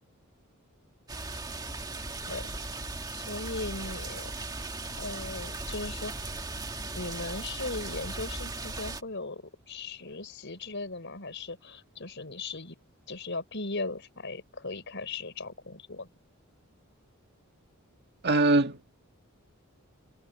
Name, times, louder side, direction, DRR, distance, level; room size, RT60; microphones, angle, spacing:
sound 1, 1.1-9.0, right 2 dB, 20° right, 1.9 m, -37 dB
voice 1, 3.1-4.3 5.0-6.3 6.9-12.8 13.1-16.1, left 3 dB, 55° left, 5.1 m, -38 dB
voice 2, 18.2-18.9, right 2 dB, 50° right, 2.0 m, -23 dB
head